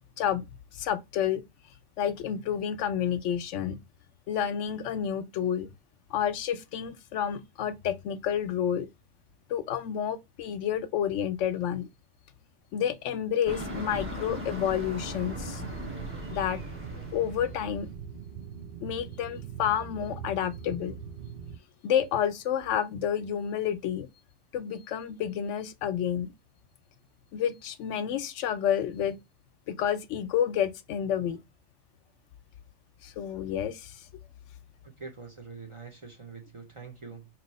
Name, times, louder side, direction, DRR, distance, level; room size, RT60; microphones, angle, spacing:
voice 1, 0.7-1.4 2.0-3.8 4.3-5.7 6.1-8.9 9.5-11.9 12.7-15.6 16.3-16.6 17.1-17.9 18.8-21.0 21.8-24.1 24.5-26.3 27.3-29.2 29.7-31.4 33.0-33.9, left 9 dB, 90° left, 0.9 m, -29 dB
sound 1, 13.5-18.0, equal, 10° right, 1.0 m, -39 dB
sound 2, 15.0-21.6, right 7 dB, 60° right, 0.8 m, -42 dB
voice 2, 34.8-37.3, right 5 dB, 35° right, 0.6 m, -44 dB
3.0 x 2.9 x 4.0 m
omnidirectional pair, 1.2 m